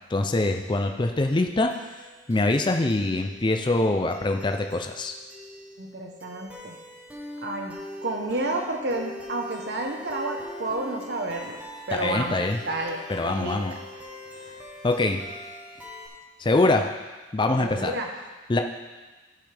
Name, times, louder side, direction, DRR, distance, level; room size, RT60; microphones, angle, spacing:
voice 1, 0.1-1.7 2.3-5.1 11.9-12.6 13.1-13.7 14.8-15.2 16.4-16.9 17.3-17.9 18.5-18.6, left 2 dB, 25° left, 5 dB, 0.4 m, -24 dB
sound 1, 1.7-16.1, left 1 dB, 5° right, 1.0 m, -43 dB
voice 2, 5.8-6.7 7.4-11.6 11.9-12.4 12.7-13.8 17.6-18.1, right 2 dB, 55° right, 2 dB, 1.0 m, -31 dB
13.5 x 5.6 x 3.4 m, 1.2 s
head